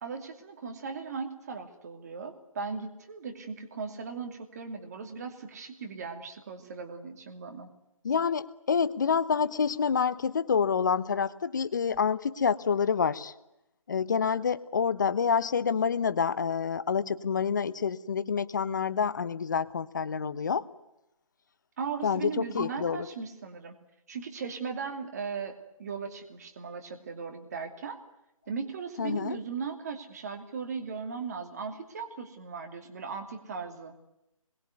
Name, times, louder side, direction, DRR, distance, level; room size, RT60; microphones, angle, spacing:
voice 1, 0.0-7.7 21.8-23.8 24.1-28.0 28.5-33.9, right 5 dB, 30° right, 5 dB, 2.8 m, -38 dB
voice 2, 8.0-13.3 13.9-20.6 22.0-23.1 29.0-29.4, left 6 dB, 35° left, 16 dB, 1.0 m, -27 dB
25.5 x 22.5 x 9.6 m, 0.87 s
figure-of-eight pair, 165°, 18 cm